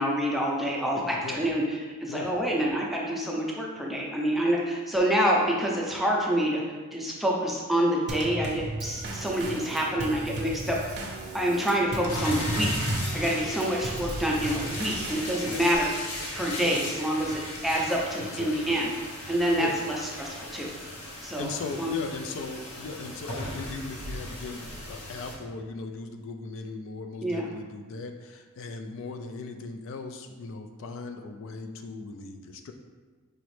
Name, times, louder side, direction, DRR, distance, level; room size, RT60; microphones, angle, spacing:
voice 1, 0.0-11.1 11.3-12.9 13.1-15.9 16.3-18.9 19.3-20.7 21.2-22.0 27.2-27.5, equal, ahead, -3 dB, 0.5 m, -27 dB
Drum kit / Snare drum / Bass drum, 8.1-15.8, right 2 dB, 50° right, 0.6 m, -36 dB
voice 2, 9.4-9.7 15.4-15.6 16.6-16.8 18.2-18.6 19.6-19.8 21.1-32.7, left 3 dB, 60° left, 6 dB, 0.3 m, -38 dB
sound 1, 12.1-25.3, left 1 dB, 85° left, 0.9 m, -36 dB
5.0 x 3.0 x 3.1 m, 1.4 s
head